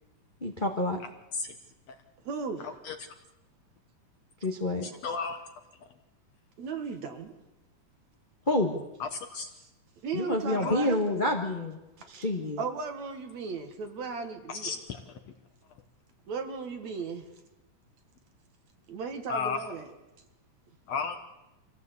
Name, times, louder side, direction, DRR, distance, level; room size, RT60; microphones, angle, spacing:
voice 1, 0.4-1.0 4.4-4.9 8.5-8.8 10.1-11.8 12.1-12.6, left 1 dB, 25° left, 3 dB, 1.0 m, -28 dB
voice 2, 2.2-2.7 6.6-7.3 10.0-11.0 12.0-12.3 12.6-14.8 16.3-17.3 18.9-19.9, right 5 dB, 60° right, 6 dB, 2.8 m, -36 dB
voice 3, 5.0-5.4 9.0-9.1 9.4-9.5 10.6-10.8 14.5-15.0 19.3-19.6 20.9-21.2, left 5 dB, 60° left, 7 dB, 1.9 m, -32 dB
25.0 x 16.5 x 8.3 m, 0.99 s
omnidirectional pair, 3.9 m